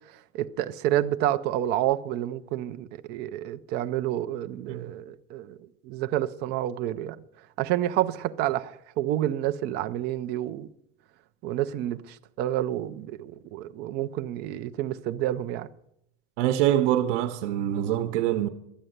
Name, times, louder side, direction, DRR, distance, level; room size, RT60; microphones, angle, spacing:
voice 1, 0.3-5.6 5.8-7.2 7.6-10.7 11.4-15.7, right 13 dB, 30° right, 0.4 m, -29 dB
voice 2, 16.4-18.5, right 12 dB, 80° right, 0.9 m, -24 dB
12.5 x 8.7 x 7.9 m
cardioid pair, 180°, 35 cm